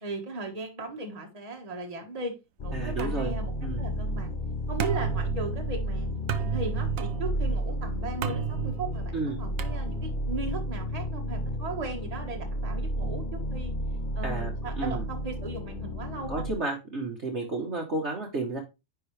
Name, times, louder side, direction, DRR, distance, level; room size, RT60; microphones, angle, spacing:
voice 1, 0.0-2.3 2.6-3.5 3.8-4.3 4.7-6.1 6.3-9.1 9.4-13.7 14.1-16.5, right 2 dB, 25° right, 2 dB, 1.6 m, -37 dB
sound 1, 2.6-16.5, equal, 70° left, 0.4 m, -32 dB
voice 2, 2.7-3.3 3.6-3.8 9.1-9.4 14.2-14.5 14.8-15.0 16.3-18.6, right 3 dB, 45° right, 1 dB, 1.5 m, -31 dB
sound 2, 3.0-10.4, right 8 dB, 60° right, 1.0 m, -35 dB
9.9 x 4.6 x 3.3 m, 0.25 s
omnidirectional pair, 1.8 m